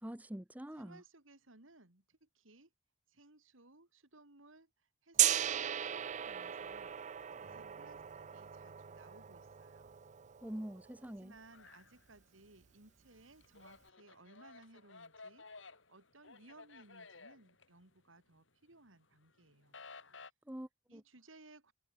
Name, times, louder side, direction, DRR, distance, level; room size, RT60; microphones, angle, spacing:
voice 1, 0.0-1.0 10.4-11.4 20.5-21.0, equal, 10° right, 0.7 m, -45 dB
voice 2, 0.8-2.7 3.1-4.7 5.0-7.0 7.4-10.0 11.1-19.8 20.9-21.7, right 2 dB, 90° right, 3.6 m, -61 dB
Gong, 5.2-11.1, right 11 dB, 40° right, 0.4 m, -37 dB
sound 1, 7.4-11.6, right 1 dB, 70° right, 3.4 m, -64 dB
sound 2, 11.5-12.6 12.9-18.4 18.7-20.3, left 4 dB, 70° left, 3.9 m, -55 dB
head